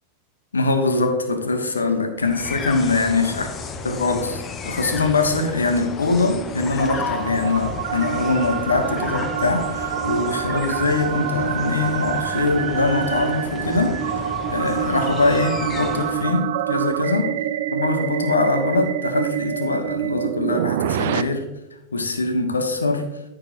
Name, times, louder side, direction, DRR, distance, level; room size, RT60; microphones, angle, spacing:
voice 1, 0.5-3.5 3.8-17.4 17.7-21.4 21.9-23.0, left 3 dB, 75° left, 6 dB, 1.2 m, -22 dB
sound 1, 2.2-16.4, left 5 dB, 25° left, 0.7 m, -33 dB
sound 2, 6.1-21.2, right 11 dB, 55° right, 0.4 m, -27 dB
13.5 x 5.2 x 3.0 m, 0.94 s
figure-of-eight pair, 90°, 0 cm